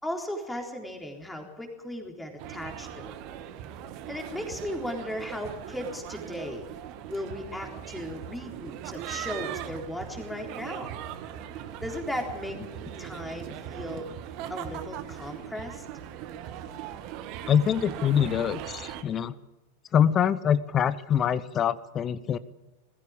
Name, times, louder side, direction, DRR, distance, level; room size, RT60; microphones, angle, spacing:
voice 1, 0.0-3.2 4.1-6.7 7.1-10.9 11.8-12.6 13.0-14.1 14.5-15.8, left 1 dB, 5° left, 2 dB, 3.9 m, -36 dB
sound 1, 2.4-19.0, right 10 dB, 40° right, 1.6 m, -39 dB
voice 2, 17.5-19.3 19.9-22.4, left 8 dB, 25° left, 19 dB, 0.8 m, -24 dB
20.5 x 15.5 x 8.8 m, 1.1 s
figure-of-eight pair, 90°, 0 cm